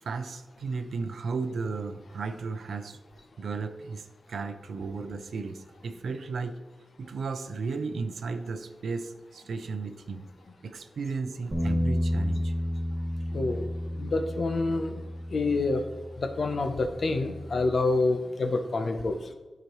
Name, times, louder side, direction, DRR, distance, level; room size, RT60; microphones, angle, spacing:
voice 1, 0.0-3.0 3.4-6.6 7.0-10.3 10.6-12.5, right 4 dB, 85° right, 9 dB, 0.6 m, -34 dB
Bass guitar, 11.5-17.8, equal, 30° right, 1.4 m, -32 dB
voice 2, 13.3-13.7 14.0-15.0 15.3-15.8 16.2-19.3, left 3 dB, 55° left, 6 dB, 0.7 m, -27 dB
11.5 x 5.0 x 3.1 m, 1.2 s
wide cardioid pair, 150°, 0 cm